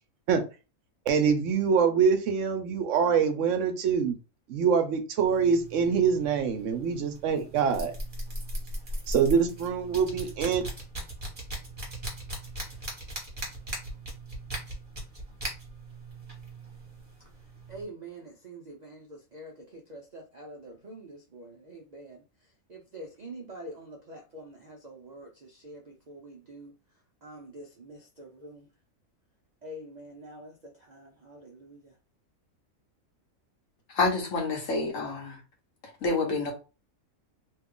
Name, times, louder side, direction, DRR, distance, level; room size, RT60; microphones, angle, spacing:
voice 1, 1.1-4.1 4.5-7.9 9.1-10.6, right 6 dB, 70° right, 0.9 m, -25 dB
sound 1, 5.2-17.8, right 1 dB, 30° right, 1.1 m, -39 dB
voice 2, 17.4-26.7 27.2-28.7 29.6-31.9, right 1 dB, 55° right, 0.5 m, -46 dB
voice 3, 33.9-35.4 36.0-36.5, left 3 dB, 70° left, 1.4 m, -28 dB
3.0 x 2.3 x 3.6 m
omnidirectional pair, 1.4 m